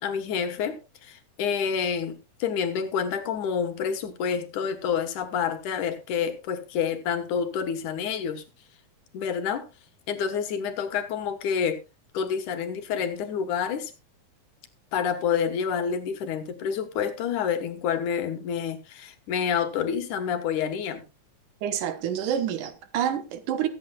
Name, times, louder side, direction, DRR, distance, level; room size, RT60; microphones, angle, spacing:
voice 1, 0.0-8.4 9.1-9.7 10.1-11.8 12.1-13.9 14.9-21.0, left 7 dB, 80° left, 2.9 m, -28 dB
voice 2, 21.6-23.7, right 9 dB, 85° right, 2.8 m, -28 dB
22.0 x 8.7 x 2.3 m
omnidirectional pair, 3.5 m